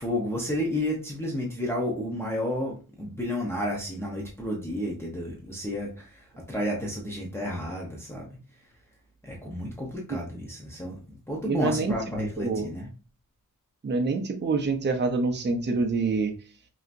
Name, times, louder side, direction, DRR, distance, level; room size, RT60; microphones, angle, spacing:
voice 1, 0.0-8.3 9.2-12.9, left 1 dB, 5° left, -3 dB, 0.9 m, -31 dB
voice 2, 11.5-11.9 12.4-12.7 13.8-16.3, right 3 dB, 30° right, 4 dB, 0.7 m, -26 dB
5.6 x 2.9 x 2.6 m, 0.35 s
wide cardioid pair, 150°, 34 cm